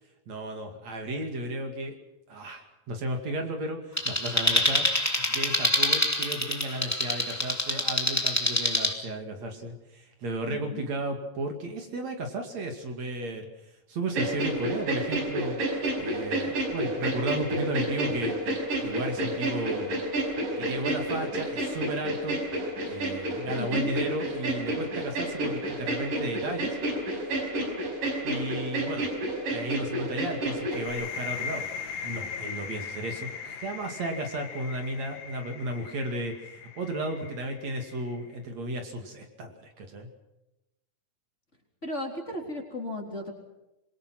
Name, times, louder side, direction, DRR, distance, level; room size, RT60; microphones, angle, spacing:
voice 1, 0.3-2.0 2.3-13.5 13.9-15.6 16.0-18.4 18.8-19.9 20.6-22.4 22.8-26.8 28.2-29.1 29.5-31.7 32.0-40.1, right 1 dB, 55° right, 4 dB, 3.6 m, -34 dB
sound 1, 4.0-8.9, left 1 dB, 5° left, 2.3 m, -26 dB
voice 2, 10.4-10.9 23.6-23.9 41.8-43.3, left 2 dB, 20° left, 1 dB, 3.9 m, -35 dB
sound 2, 14.1-30.9, right 1 dB, 85° right, 6.7 m, -30 dB
sound 3, 30.7-38.3, left 6 dB, 65° left, 2.7 m, -39 dB
26.0 x 23.0 x 6.1 m, 0.96 s
omnidirectional pair, 3.7 m